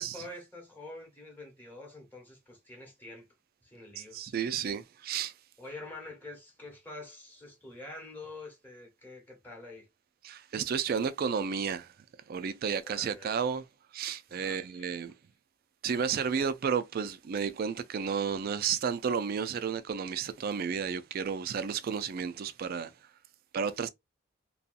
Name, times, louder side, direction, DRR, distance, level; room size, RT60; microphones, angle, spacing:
voice 1, 0.0-3.3 3.6-4.3 5.6-9.9 12.8-13.3 14.3-14.9, left 2 dB, 10° left, 1.0 m, -46 dB
voice 2, 4.0-5.3 10.2-11.9 12.3-13.6 13.9-15.1 15.8-22.9 23.5-23.9, right 6 dB, 45° right, 0.3 m, -32 dB
2.7 x 2.3 x 2.4 m
head